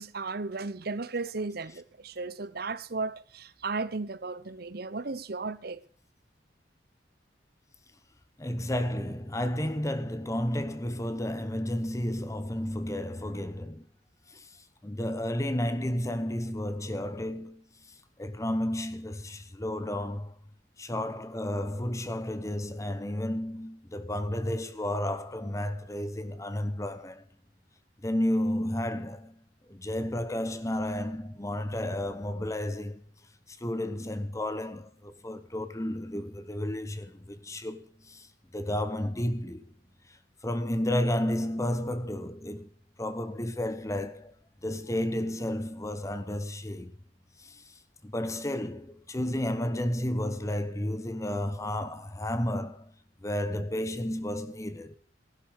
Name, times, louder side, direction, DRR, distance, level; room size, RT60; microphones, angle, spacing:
voice 1, 0.0-5.8, right 3 dB, 55° right, 0.9 m, -35 dB
voice 2, 8.4-13.9 14.3-20.4 20.8-27.2 28.0-29.4 29.7-33.0 33.5-39.6 40.1-40.2 40.4-42.7 43.0-44.4 44.6-46.9 47.4-52.9 53.2-55.0, left 1 dB, 15° left, 0.9 m, -32 dB
15.5 x 12.0 x 6.4 m
head